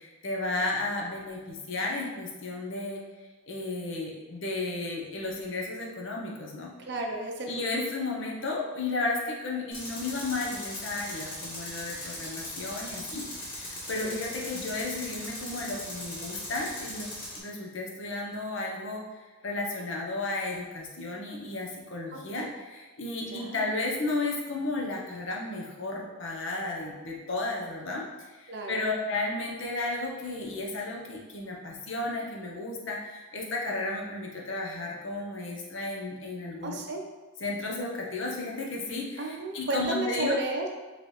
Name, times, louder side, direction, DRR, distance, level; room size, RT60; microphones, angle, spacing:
voice 1, 0.2-3.0 3.5-6.7 7.5-13.2 13.9-17.1 17.4-19.0 19.4-22.5 23.0-28.0 28.7-33.0 33.3-36.7 37.4-40.4, left 2 dB, 55° left, -1 dB, 0.8 m, -33 dB
voice 2, 6.8-7.9 14.0-14.2 22.1-22.5 23.3-23.7 28.5-28.9 36.6-37.0 39.2-40.8, right 2 dB, 50° right, 1 dB, 0.6 m, -33 dB
Tools, 9.7-17.4, left 1 dB, 40° left, 1.1 m, -39 dB
4.9 x 3.3 x 3.1 m, 1.2 s
head